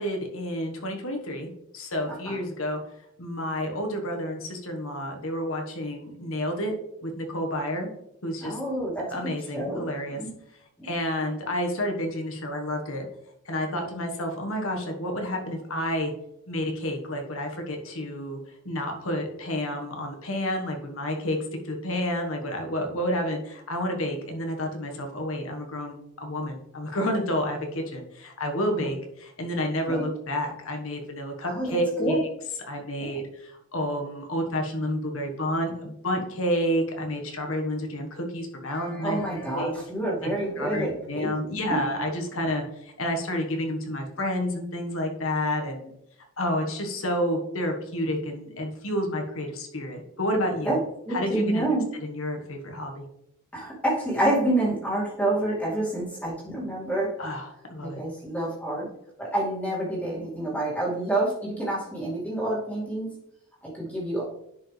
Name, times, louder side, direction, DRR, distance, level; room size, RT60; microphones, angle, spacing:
voice 1, 0.0-2.8 3.2-6.7 7.0-7.9 8.2-8.6 9.1-10.2 10.8-13.0 13.4-16.1 16.5-18.4 18.6-21.4 21.6-32.3 32.6-39.2 39.5-39.7 40.2-45.9 46.4-50.8 51.1-51.7 52.0-53.0 57.2-58.0, equal, 70° left, 3 dB, 1.4 m, -30 dB
voice 2, 8.4-9.2 9.5-9.8 10.1-10.3 10.8-10.9 28.8-28.9 29.9-30.0 31.4-32.2 33.0-33.1 38.7-41.6 50.6-50.8 51.1-51.8 53.5-57.1 57.8-58.9 59.2-63.1 63.8-64.3, right 1 dB, 5° left, -6 dB, 2.4 m, -28 dB
10.0 x 5.0 x 3.3 m, 0.79 s
head